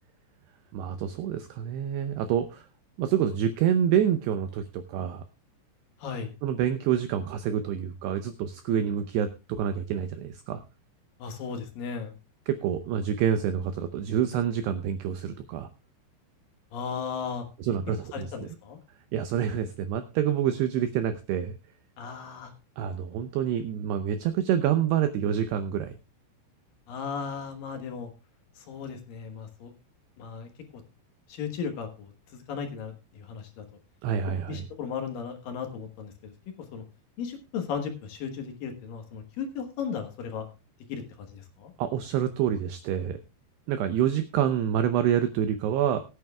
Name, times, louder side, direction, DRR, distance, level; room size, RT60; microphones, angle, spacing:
voice 1, 0.7-2.7 3.0-5.2 6.4-10.6 12.5-15.7 17.6-18.5 19.1-21.6 22.8-26.0 34.0-34.7 41.8-43.2 43.7-46.0, right 9 dB, 85° right, 9 dB, 2.4 m, -27 dB
voice 2, 6.0-6.3 11.2-12.1 16.7-17.4 18.1-18.8 22.0-22.5 26.9-28.1 28.6-29.7 30.2-30.5 31.3-32.1 32.5-33.6 34.5-36.3 36.7-36.8 37.2-40.4 40.9-41.0 41.3-41.7, left 6 dB, 70° left, 5 dB, 2.2 m, -35 dB
21.5 x 9.1 x 2.3 m, 0.30 s
omnidirectional pair, 5.7 m